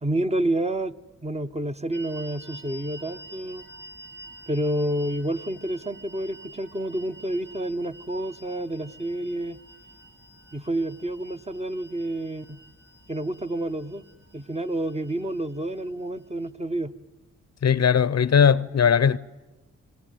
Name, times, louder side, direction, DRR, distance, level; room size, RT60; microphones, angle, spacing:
voice 1, 0.0-1.0 1.2-3.6 4.5-9.6 10.5-12.6 13.1-14.0 14.3-16.9, right 1 dB, 20° right, 1.0 m, -29 dB
sound 1, 1.9-16.5, right 1 dB, 65° right, 2.2 m, -48 dB
voice 2, 17.6-19.2, left 7 dB, 50° left, 0.8 m, -19 dB
29.0 x 19.0 x 9.3 m
supercardioid pair, 50°, 33 cm